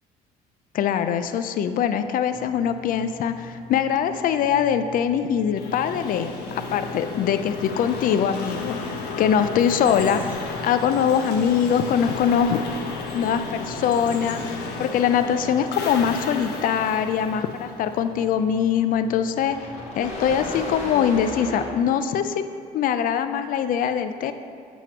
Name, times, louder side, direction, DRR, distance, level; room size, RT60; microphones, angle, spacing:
voice 1, 0.7-8.8 9.2-10.4 10.6-12.6 13.1-19.6 20.0-22.4 22.7-24.3, left 8 dB, 55° left, 10 dB, 0.4 m, -23 dB
sound 1, 2.3-21.7, left 2 dB, 40° left, 1.4 m, -41 dB
sound 2, 5.6-18.4, left 4 dB, 75° left, 0.8 m, -33 dB
sound 3, 9.8-15.0 15.2-15.5, equal, 10° right, 1.2 m, -46 dB
7.0 x 2.9 x 5.9 m, 2.4 s
cardioid pair, 110°, 17 cm